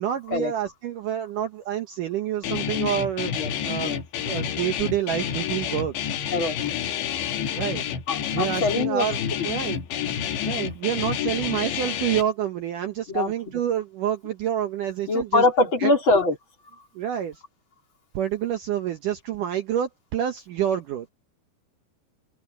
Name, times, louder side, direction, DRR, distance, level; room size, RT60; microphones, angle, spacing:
voice 1, 0.0-4.0 4.2-6.1 7.5-7.8 8.3-9.2 9.4-9.8 10.4-15.4 15.8-15.9 17.0-17.4 18.1-21.1, right 10 dB, 70° right, 2.0 m, -28 dB
Guitar, 2.4-12.2, left 9 dB, 80° left, 4.1 m, -29 dB
voice 2, 3.4-4.0 6.3-6.6 8.1-9.1 9.4-9.5 13.1-13.6 15.1-16.4, left 3 dB, 30° left, 4.1 m, -23 dB
open air
omnidirectional pair, 5.0 m